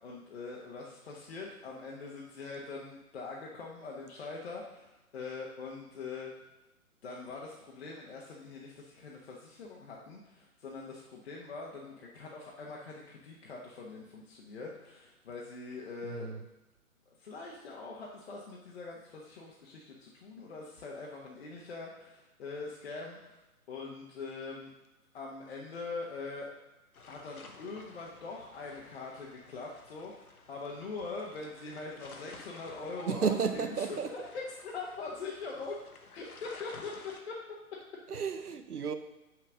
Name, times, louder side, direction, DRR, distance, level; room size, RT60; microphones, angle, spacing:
voice 1, 0.0-6.3 7.0-16.3 17.2-23.4 23.7-24.7 25.1-26.5 27.1-33.8 34.1-35.8 36.1-36.9 37.3-37.4, left 3 dB, 45° left, -3 dB, 1.2 m, -43 dB
voice 2, 16.0-16.4 33.1-34.1 38.1-38.9, right 6 dB, 80° right, 9 dB, 0.8 m, -32 dB
sound 1, 26.9-37.2, left 4 dB, 70° left, 1.1 m, -53 dB
6.2 x 4.4 x 6.3 m, 1.0 s
figure-of-eight pair, 135°, 44 cm